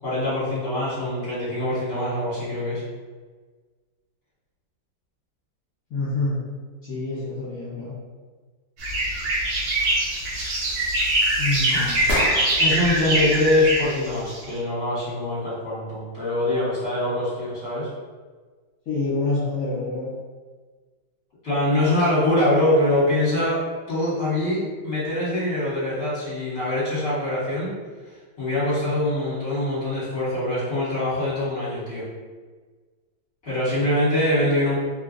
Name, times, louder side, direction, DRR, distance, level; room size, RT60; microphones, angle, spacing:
voice 1, 0.0-2.8 11.7-11.9 12.6-17.9 21.4-27.7 28.4-32.0 33.4-34.8, left 1 dB, 35° left, -10 dB, 1.7 m, -24 dB
voice 2, 5.9-6.4 6.8-7.9 11.4-12.0 18.9-20.1 28.8-28.9, left 2 dB, 60° left, -10 dB, 1.3 m, -27 dB
sound 1, 8.8-14.4, right 1 dB, 70° right, 1.4 m, -23 dB
sound 2, 9.6-12.8, left 1 dB, 75° left, 0.8 m, -33 dB
3.5 x 2.5 x 2.4 m, 1.4 s
omnidirectional pair, 2.0 m